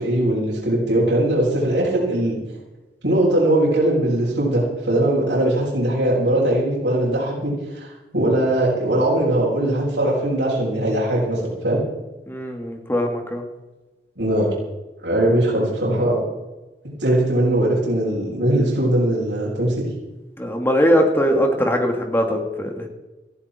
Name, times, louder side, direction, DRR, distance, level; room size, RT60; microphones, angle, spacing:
voice 1, 0.0-2.4 3.0-11.8 14.2-14.5 15.0-16.3 17.0-19.9, right 1 dB, 80° right, -8 dB, 6.4 m, -20 dB
voice 2, 12.3-13.4 20.4-22.9, equal, 15° left, 3 dB, 2.5 m, -20 dB
18.0 x 15.0 x 4.6 m, 1.1 s
head